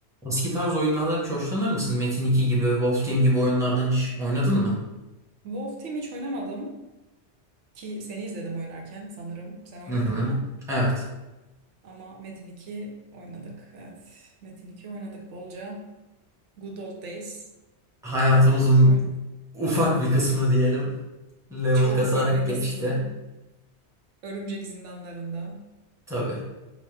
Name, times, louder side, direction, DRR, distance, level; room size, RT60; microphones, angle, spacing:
voice 1, 0.2-4.8 9.9-10.4 10.7-11.1 18.0-19.0 19.5-20.9 21.5-23.0 26.1-26.5, equal, 5° right, -5 dB, 0.9 m, -22 dB
voice 2, 5.4-6.8 7.7-10.5 11.8-15.9 16.6-17.5 18.5-19.2 21.7-23.1 24.2-25.7, right 2 dB, 85° right, 0 dB, 1.0 m, -37 dB
5.1 x 2.1 x 3.2 m, 1.0 s
omnidirectional pair, 1.2 m